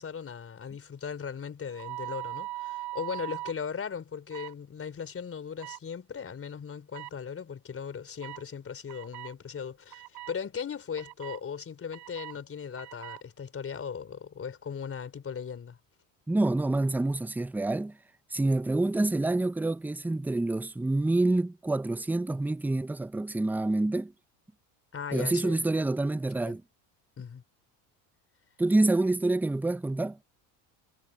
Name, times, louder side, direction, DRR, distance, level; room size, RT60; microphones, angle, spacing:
voice 1, 0.0-15.8 24.9-25.7 26.4-26.6 27.2-27.4, left 7 dB, 30° left, 3.8 m, -38 dB
sound 1, 1.7-3.5 4.3-4.5 5.6-5.8 6.9-7.1 8.2-8.4 8.9-9.3 9.9-10.3 11.0-11.4 11.9-12.4 12.8-13.2, right 17 dB, 60° right, 7.7 m, -40 dB
voice 2, 16.3-18.0 18.3-24.1 25.1-26.6 28.6-30.2, right 2 dB, 5° right, 0.6 m, -27 dB
supercardioid pair, 100°, 43 cm